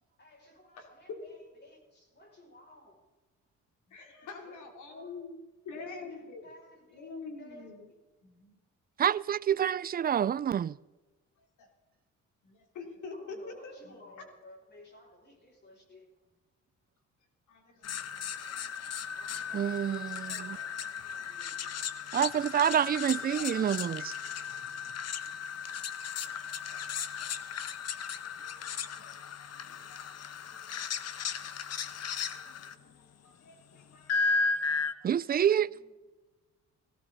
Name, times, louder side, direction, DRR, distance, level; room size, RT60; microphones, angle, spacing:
voice 1, 0.2-2.9 4.4-4.6 4.9-5.2 5.7-8.0 13.1-16.1 19.1-21.7 22.8-23.9 32.6-33.1 35.7-36.0, left 1 dB, 35° left, 6.3 m, -55 dB
voice 2, 0.8-1.4 3.9-5.4 5.6-6.5 6.9-7.9 8.2-8.6 11.6-11.7 12.4-14.2 17.5-17.9 24.9-25.0 26.7-27.3 27.7-31.3 31.5-32.4 33.2-35.2, left 4 dB, 75° left, 3.4 m, -47 dB
voice 3, 9.0-10.8 19.5-20.6 22.1-24.1 35.0-35.7, right 9 dB, 30° right, 0.4 m, -28 dB
sound 1, 17.8-32.7 34.1-34.9, left 5 dB, 55° left, 1.1 m, -35 dB
17.5 x 17.0 x 4.0 m
cardioid pair, 90°, 30 cm